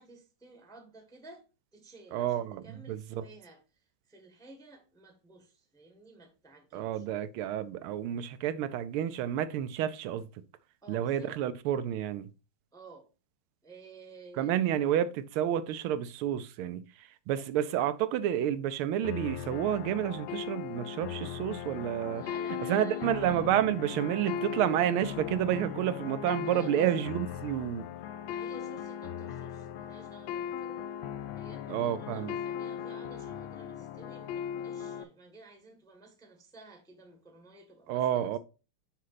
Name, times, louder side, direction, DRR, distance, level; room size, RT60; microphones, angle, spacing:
voice 1, 0.0-1.4 1.7-7.1 10.8-11.3 12.7-13.1 13.6-14.5 22.1-23.1 26.4-26.9 28.2-31.0 31.3-38.4, right 3 dB, 5° left, 0.8 m, -53 dB
voice 2, 2.1-3.2 6.7-10.3 10.9-12.3 14.4-22.2 22.7-27.9 31.7-32.4 37.9-38.4, right 11 dB, 80° right, 1.4 m, -30 dB
sound 1, 19.0-35.0, left 9 dB, 75° left, 1.3 m, -38 dB
6.4 x 5.3 x 4.0 m
omnidirectional pair, 2.4 m